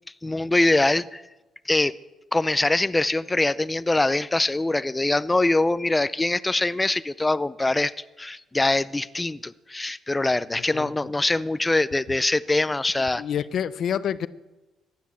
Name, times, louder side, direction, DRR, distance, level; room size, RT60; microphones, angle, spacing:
voice 1, 0.2-1.2 1.7-1.9 2.3-7.9 8.2-13.2, left 2 dB, 15° left, 16 dB, 0.5 m, -23 dB
voice 2, 13.2-14.3, left 9 dB, 65° left, 16 dB, 0.6 m, -27 dB
15.5 x 10.5 x 7.2 m, 1.1 s
cardioid pair, 90°, 0 cm